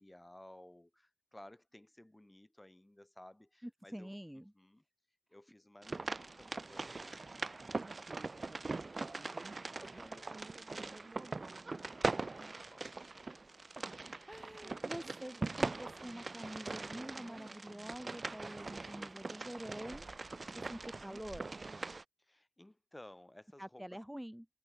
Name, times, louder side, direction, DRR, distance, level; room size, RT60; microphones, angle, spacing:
voice 1, 0.0-4.2 4.5-4.8 5.3-13.1 22.2-23.8, left 1 dB, 25° left, 4.4 m, -58 dB
voice 2, 3.6-4.5 12.3-12.5 14.3-21.5 23.6-24.5, equal, 5° right, 0.6 m, -47 dB
sound 1, 5.8-22.0, right 3 dB, 80° right, 0.6 m, -41 dB
wide cardioid pair, 55°, 0 cm